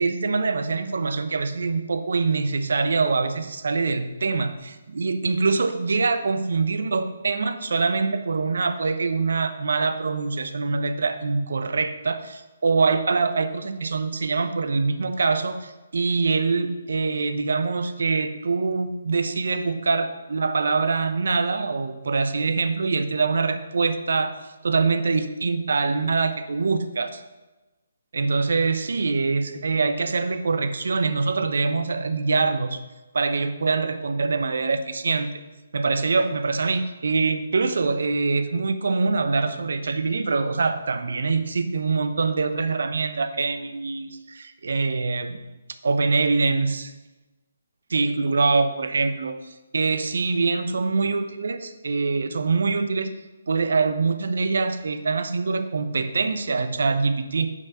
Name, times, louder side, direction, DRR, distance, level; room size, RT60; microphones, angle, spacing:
voice 1, 0.0-24.3 24.6-27.2 28.1-32.8 33.1-35.4 35.7-45.4 45.8-46.9 47.9-53.1 53.5-57.5, right 4 dB, 70° right, 10 dB, 0.9 m, -24 dB
9.5 x 5.8 x 5.7 m, 1.1 s
figure-of-eight pair, 145°, 0 cm